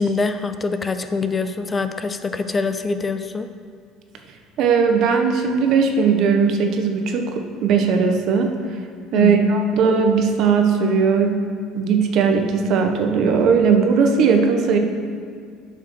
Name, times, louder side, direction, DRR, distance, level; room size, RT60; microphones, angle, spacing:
voice 1, 0.0-3.5 9.1-9.6, left 4 dB, 25° left, 9 dB, 0.5 m, -24 dB
voice 2, 4.6-8.5 9.1-11.4 11.7-14.8, right 5 dB, 60° right, 4 dB, 1.0 m, -18 dB
7.9 x 5.8 x 6.6 m, 2.2 s
supercardioid pair, 110°, 0 cm